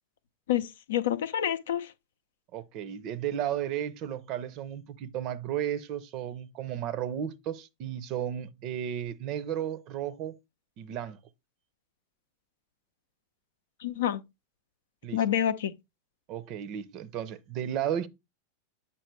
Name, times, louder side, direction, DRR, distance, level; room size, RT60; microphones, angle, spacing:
voice 1, 0.5-1.9 13.8-14.2 15.1-15.7, left 10 dB, 60° left, 0.6 m, -28 dB
voice 2, 2.5-10.4 10.8-11.2 15.0-15.2 16.3-18.1, right 10 dB, 40° right, 0.6 m, -34 dB
8.3 x 5.5 x 3.2 m
figure-of-eight pair, 90°, 0 cm